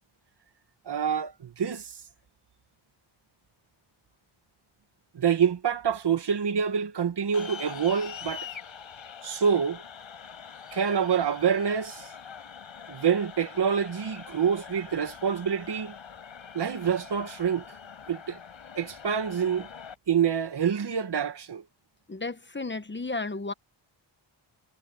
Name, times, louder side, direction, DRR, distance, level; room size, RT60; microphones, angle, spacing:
voice 1, 0.8-2.0 5.1-8.5 9.2-9.8 10.7-12.1 12.9-15.9 16.5-17.6 18.1-18.4 18.8-19.7 20.1-21.6, right 7 dB, 55° right, 1.6 m, -26 dB
sound 1, 7.3-19.9, left 7 dB, 70° left, 7.7 m, -44 dB
voice 2, 22.1-23.5, left 3 dB, 25° left, 1.1 m, -33 dB
wide cardioid pair, 90°, 48 cm